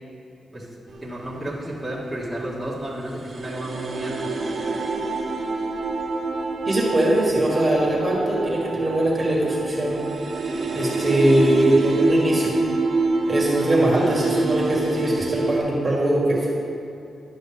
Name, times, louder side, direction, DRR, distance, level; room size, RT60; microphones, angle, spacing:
sound 1, 0.9-1.6 2.1-2.2 2.5-15.6, right 3 dB, 50° right, 1.0 m, -26 dB
voice 1, 1.0-4.3 13.6-13.8, right 1 dB, ahead, -7 dB, 1.8 m, -32 dB
voice 2, 6.7-10.0 10.7-12.5 13.3-16.6, right 1 dB, 25° right, -4 dB, 1.8 m, -21 dB
11.5 x 6.0 x 3.6 m, 2.7 s
cardioid pair, 100°, 0 cm